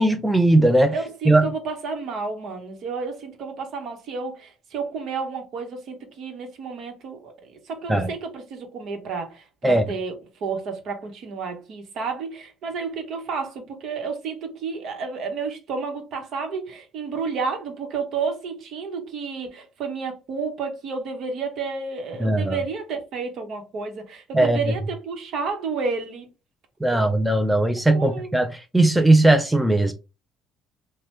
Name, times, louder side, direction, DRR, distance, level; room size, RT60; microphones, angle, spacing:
voice 1, 0.0-0.9 1.3-1.4 7.9-8.1 9.6-9.8 22.2-22.6 24.3-24.7 26.8-29.9, right 1 dB, 5° right, 0.4 m, -18 dB
voice 2, 0.9-10.1 10.4-26.3 26.9-27.2 27.9-28.3, right 5 dB, 65° right, 1.0 m, -31 dB
3.0 x 2.2 x 3.4 m
cardioid pair, 95°, 0 cm